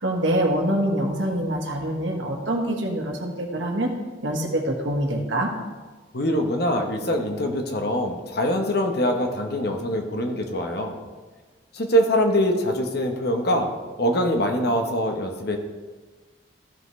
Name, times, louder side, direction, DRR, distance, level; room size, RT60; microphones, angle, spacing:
voice 1, 0.0-3.9 4.2-5.5, right 1 dB, 70° right, 1 dB, 1.5 m, -25 dB
voice 2, 6.1-11.0 11.7-13.7 14.0-15.6, equal, 55° left, 4 dB, 1.1 m, -23 dB
14.5 x 5.7 x 3.2 m, 1.3 s
head